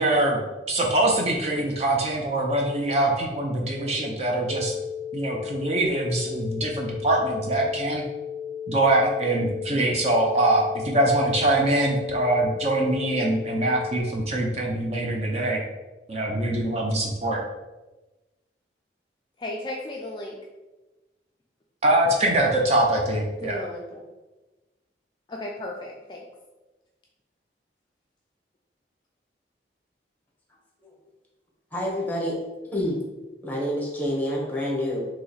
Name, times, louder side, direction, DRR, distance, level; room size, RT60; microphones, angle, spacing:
voice 1, 0.0-4.7 5.1-8.0 8.7-15.6 16.1-17.4 21.8-23.6, right 1 dB, 35° right, 0 dB, 0.5 m, -23 dB
sound 1, 4.5-14.0, left 8 dB, 80° right, 0.7 m, -35 dB
voice 2, 19.4-20.4 23.4-24.1 25.3-26.2, left 1 dB, 25° left, -1 dB, 0.3 m, -35 dB
voice 3, 31.7-33.0 33.4-35.0, equal, 10° left, -2 dB, 0.8 m, -28 dB
2.9 x 2.9 x 3.9 m, 1.1 s
head